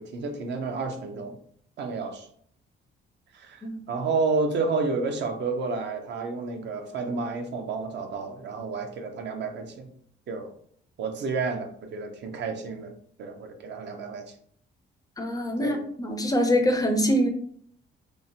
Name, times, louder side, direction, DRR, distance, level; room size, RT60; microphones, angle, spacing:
voice 1, 0.0-1.4 1.8-2.3 3.3-9.9 10.3-10.5 11.0-12.9 13.2-14.2 15.6-15.8, right 4 dB, 60° right, 5 dB, 0.5 m, -30 dB
voice 2, 15.2-17.3, equal, 20° left, 5 dB, 0.4 m, -24 dB
2.8 x 2.0 x 2.7 m, 0.62 s
cardioid pair, 90°, 20 cm